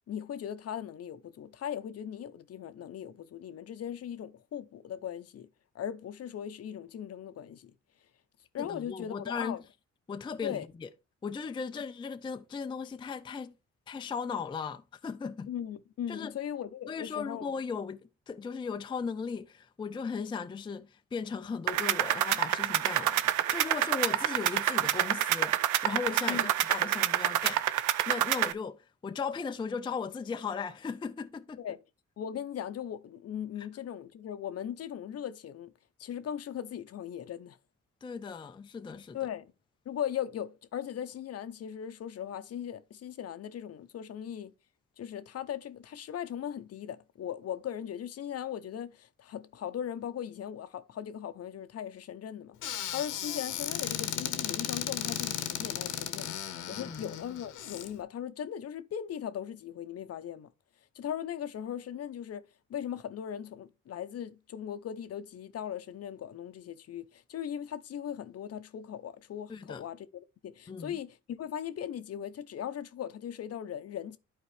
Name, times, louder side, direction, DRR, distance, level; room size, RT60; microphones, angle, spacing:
voice 1, 0.1-5.5 5.7-7.7 8.5-9.6 10.4-10.7 15.5-17.5 26.3-26.5 31.6-31.8 32.2-35.7 36.0-37.6 39.1-39.5 39.9-44.5 45.0-60.5 60.9-74.2, left 9 dB, 55° left, 0.7 m, -39 dB
voice 2, 8.6-9.6 10.1-10.9 11.2-13.5 13.9-15.5 16.1-16.3 16.9-31.6 33.6-33.7 38.0-39.2 56.8-57.0 69.5-69.8 70.7-71.0, left 5 dB, 15° left, 0.4 m, -37 dB
sound 1, 21.7-28.5, right 13 dB, 80° right, 0.5 m, -28 dB
Squeak / Cupboard open or close, 52.6-57.9, left 10 dB, 85° left, 1.0 m, -35 dB
11.0 x 4.5 x 3.3 m
cardioid pair, 90°, 30 cm